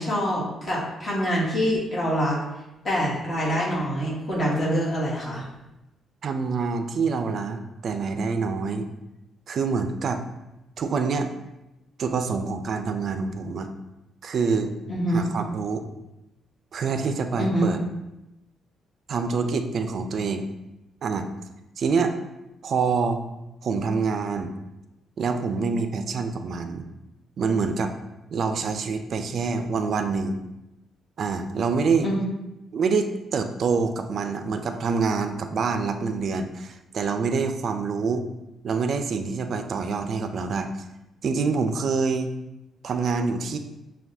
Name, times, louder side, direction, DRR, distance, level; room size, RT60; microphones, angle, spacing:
voice 1, 0.0-2.4 2.8-5.5 14.9-15.2 17.4-17.7 32.0-32.2, equal, 40° left, -6 dB, 1.3 m, -25 dB
voice 2, 6.2-8.9 9.5-10.2 10.8-11.3 12.0-13.7 14.2-14.7 15.1-15.8 16.7-17.8 19.1-20.4 21.0-21.3 21.8-22.1 22.6-23.2 23.6-24.5 25.2-26.8 27.4-27.9 28.3-30.4 31.2-32.1 32.7-38.2 38.6-40.7 41.2-42.3 42.8-43.6, right 5 dB, 55° right, 7 dB, 0.3 m, -26 dB
5.7 x 2.3 x 2.6 m, 0.96 s
cardioid pair, 90°, 0 cm